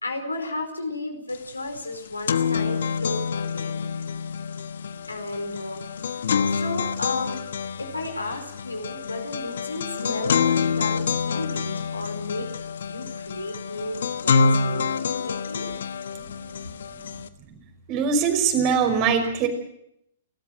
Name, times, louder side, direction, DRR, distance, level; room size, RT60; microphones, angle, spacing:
voice 1, 0.0-3.8 5.1-5.9 6.4-7.4 7.8-15.7, left 2 dB, 90° left, 4 dB, 4.7 m, -33 dB
sound 1, 1.3-1.4 1.7-17.3, left 5 dB, 65° left, 1.2 m, -27 dB
voice 2, 17.9-19.5, right 6 dB, 35° right, 6 dB, 5.5 m, -22 dB
29.5 x 14.0 x 7.7 m, 0.76 s
figure-of-eight pair, 115°, 0 cm